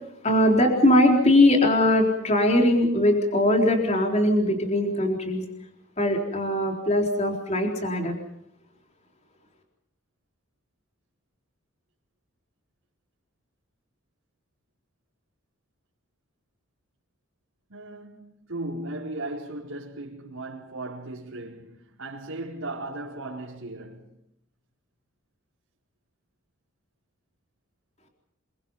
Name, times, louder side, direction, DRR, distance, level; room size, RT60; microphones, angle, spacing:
voice 1, 0.2-5.4 6.0-8.1, left 1 dB, 30° left, 3.9 m, -21 dB
voice 2, 17.7-24.1, right 2 dB, 75° right, 4.6 m, -37 dB
28.5 x 23.5 x 5.6 m
head